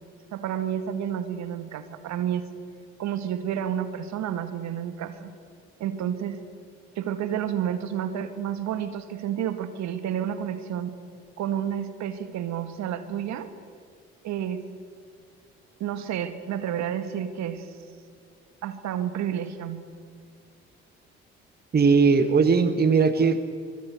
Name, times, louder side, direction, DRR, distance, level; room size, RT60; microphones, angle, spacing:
voice 1, 0.3-2.4 3.0-5.3 5.8-6.4 7.0-10.9 11.4-13.5 14.2-14.6 15.8-17.8 18.6-19.8, right 9 dB, 55° right, 11 dB, 2.0 m, -30 dB
voice 2, 21.7-23.6, right 5 dB, 30° right, 11 dB, 1.4 m, -20 dB
25.5 x 23.5 x 8.1 m, 2.2 s
hypercardioid pair, 50°, 32 cm